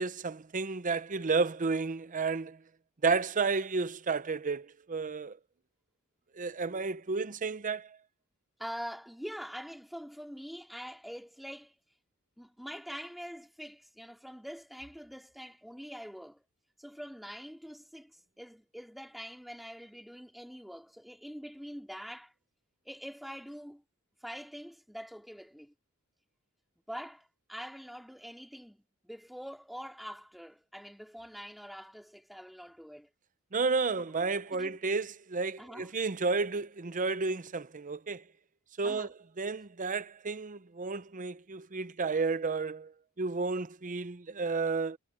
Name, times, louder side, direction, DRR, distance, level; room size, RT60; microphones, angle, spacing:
voice 1, 0.0-2.6 3.0-5.4 6.4-7.9 33.5-38.2 38.8-39.1 39.4-42.9 43.2-45.0, right 4 dB, 35° right, 0.7 m, -32 dB
voice 2, 8.6-11.7 12.4-16.4 16.8-22.3 22.8-23.8 24.2-25.7 26.9-33.1 34.5-34.8 35.6-35.9 38.8-39.1, equal, ahead, 2.6 m, -45 dB
head